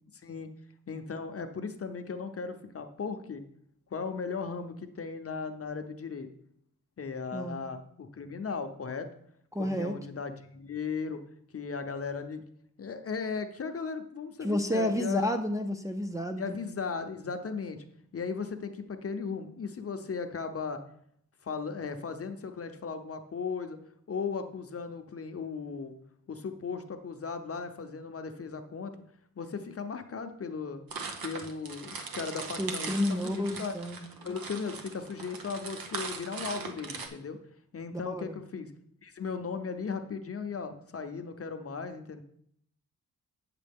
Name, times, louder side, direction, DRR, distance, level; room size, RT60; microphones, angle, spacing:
voice 1, 0.9-3.4 3.9-6.3 7.0-9.1 9.6-11.2 11.5-12.4 12.8-15.4 16.4-17.8 18.1-20.8 21.4-23.8 24.1-25.9 26.3-29.0 29.4-30.8 31.2-33.7 34.2-37.4 37.7-38.7 39.0-42.2, left 5 dB, 40° left, 8 dB, 0.7 m, -37 dB
voice 2, 9.5-10.0 14.4-16.4 32.6-34.1 38.1-38.4, left 1 dB, 10° right, 3 dB, 0.6 m, -31 dB
sound 1, 30.9-37.1, right 4 dB, 80° right, 1.1 m, -40 dB
8.8 x 7.5 x 3.5 m, 0.70 s
wide cardioid pair, 145°, 34 cm